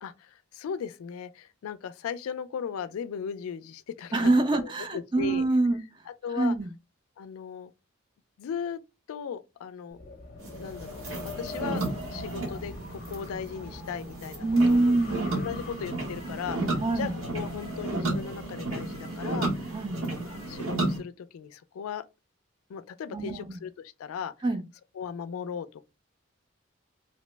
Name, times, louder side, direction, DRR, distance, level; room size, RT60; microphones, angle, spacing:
voice 1, 0.0-5.4 6.1-6.6 7.2-7.7 8.4-8.8 9.1-10.0 10.6-11.8 12.1-15.0 15.3-22.0 22.7-24.3 24.9-25.8, left 7 dB, 90° left, 0.3 m, -37 dB
voice 2, 4.1-6.0 6.4-6.7 14.4-15.3 16.8-17.1 19.7-20.0 23.1-23.6 24.4-24.6, right 2 dB, 20° right, 0.4 m, -25 dB
Wind, 9.9-18.6, left 2 dB, 40° left, 0.7 m, -43 dB
sound 1, 10.4-21.0, right 2 dB, 85° right, 1.1 m, -33 dB
2.8 x 2.0 x 3.2 m
head